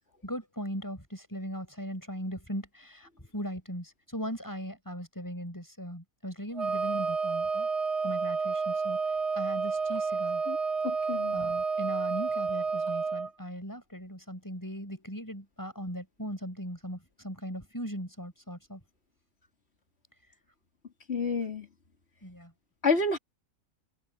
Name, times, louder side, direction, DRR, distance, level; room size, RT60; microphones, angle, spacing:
voice 1, 0.2-7.7 8.0-9.0 9.3-10.4 11.3-18.8 22.2-22.5, equal, 15° left, 7.0 m, -39 dB
Wind instrument woodwind instrument, 6.5-13.3, right 4 dB, 55° right, 1.7 m, -30 dB
voice 2, 10.8-11.4 21.1-21.7 22.8-23.2, left 4 dB, 45° left, 3.4 m, -29 dB
omnidirectional pair, 1.5 m